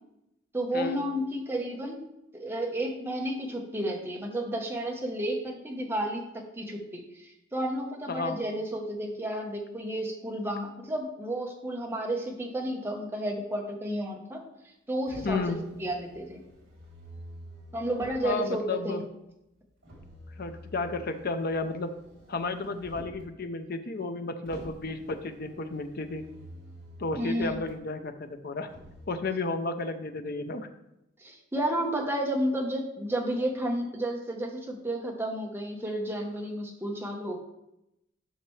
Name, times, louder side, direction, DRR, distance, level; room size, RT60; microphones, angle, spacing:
voice 1, 0.5-2.0 2.3-14.4 14.9-16.4 17.7-19.0 27.2-27.6 31.2-37.4, right 1 dB, 10° right, 0 dB, 1.1 m, -32 dB
voice 2, 8.1-8.4 15.2-15.6 18.2-19.0 20.4-21.9 22.3-26.2 27.0-28.7 29.1-30.7, left 3 dB, 50° left, 8 dB, 0.6 m, -32 dB
Motor vehicle (road), 15.1-18.5 19.8-23.3 24.4-27.7 28.7-29.1, equal, 65° right, 3.1 m, -48 dB
10.0 x 5.9 x 3.3 m, 0.87 s
head